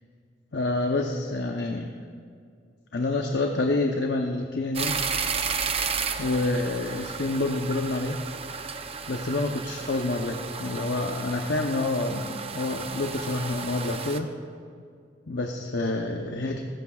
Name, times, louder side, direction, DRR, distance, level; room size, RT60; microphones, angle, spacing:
voice 1, 0.5-1.9 2.9-5.0 6.2-8.2 9.1-14.3 15.3-16.6, left 2 dB, 65° left, 2 dB, 0.8 m, -28 dB
sound 1, 4.7-14.2, right 5 dB, 30° right, 0.6 m, -33 dB
19.0 x 15.5 x 2.4 m, 2.3 s
head